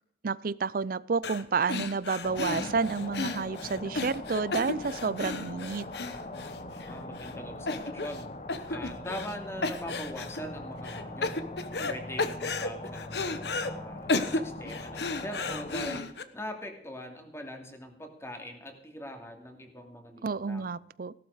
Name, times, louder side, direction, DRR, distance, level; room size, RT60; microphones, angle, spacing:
voice 1, 0.2-5.9 20.2-21.1, right 4 dB, 55° right, 20 dB, 0.5 m, -30 dB
sound 1, 1.2-1.4 1.7-6.9 7.2-7.3 7.7-8.2 8.5-9.3 9.6-10.4 10.8-11.9 12.2-13.7 14.1-16.2, left 3 dB, 65° left, 1.1 m, -33 dB
sound 2, 2.2-16.0, left 2 dB, 40° left, 1.0 m, -41 dB
voice 2, 6.9-8.3 8.7-11.4 11.9-20.7, equal, 15° left, 4 dB, 2.7 m, -42 dB
17.5 x 12.0 x 4.9 m, 0.70 s
head